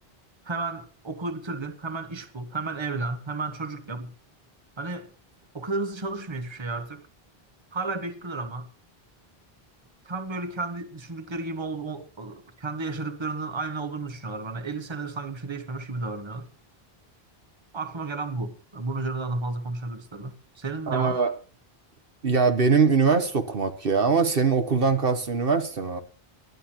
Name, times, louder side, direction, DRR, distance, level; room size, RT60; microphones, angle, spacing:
voice 1, 0.4-4.1 4.8-5.1 5.5-7.1 7.7-8.7 10.0-16.5 17.7-21.2, right 3 dB, 25° right, 1.3 m, -32 dB
voice 2, 20.9-21.3 22.2-26.0, right 5 dB, 65° right, 1.4 m, -22 dB
20.5 x 11.5 x 3.0 m
omnidirectional pair, 1.0 m